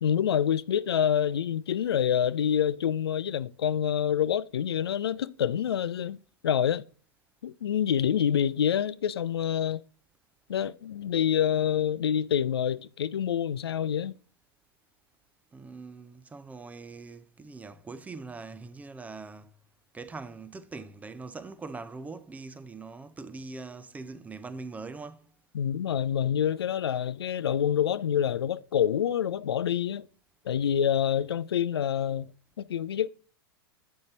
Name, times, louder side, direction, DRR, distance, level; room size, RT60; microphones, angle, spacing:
voice 1, 0.0-6.2 6.4-6.8 7.4-9.8 10.5-14.2 25.5-30.1 30.5-32.3 32.6-33.1, left 9 dB, 80° left, 0.4 m, -27 dB
voice 2, 15.5-19.5 19.9-25.3, right 4 dB, 10° right, 0.5 m, -42 dB
8.6 x 5.5 x 4.0 m
hypercardioid pair, 105°, 13 cm